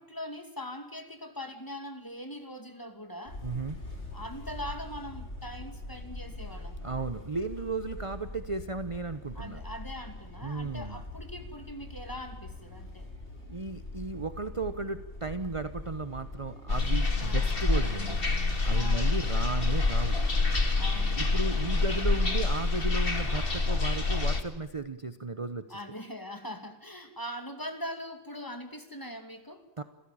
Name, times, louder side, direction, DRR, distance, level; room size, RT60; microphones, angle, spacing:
voice 1, 0.0-3.4 4.1-7.1 9.3-13.1 17.2-17.5 18.7-19.2 20.8-21.3 21.7-21.9 25.7-29.7, left 1 dB, 15° left, 6 dB, 2.6 m, -42 dB
sound 1, 3.3-21.8, left 2 dB, 65° left, 5.5 m, -43 dB
voice 2, 3.4-3.8 6.8-9.6 10.4-11.0 13.5-18.2 18.6-20.2 21.2-25.8 29.8-29.9, right 3 dB, 30° right, 10 dB, 1.0 m, -35 dB
sound 2, 16.7-24.4, left 3 dB, 50° left, 2.4 m, -27 dB
27.5 x 15.5 x 8.8 m, 1.1 s
omnidirectional pair, 1.2 m